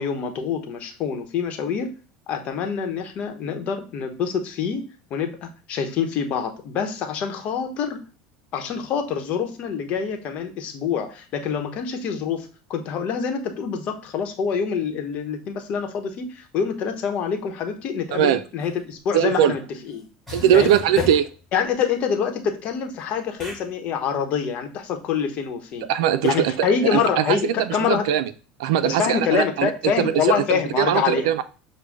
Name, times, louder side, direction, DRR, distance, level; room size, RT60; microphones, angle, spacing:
voice 1, 0.0-1.9 2.3-8.0 8.5-20.1 20.5-20.7 21.5-25.9 26.2-28.0 28.8-31.3, left 7 dB, 55° left, 1.0 m, -26 dB
voice 2, 18.1-18.4 19.1-19.5 20.3-21.2 25.9-28.2 28.6-29.7 30.0-31.4, right 10 dB, 80° right, 0.4 m, -21 dB
sound 1, 18.6-18.7 19.9-20.0 20.3-21.4 23.4-23.6 26.2-26.4, left 2 dB, ahead, 1.8 m, -36 dB
6.4 x 2.2 x 3.4 m
supercardioid pair, 105°, 3 cm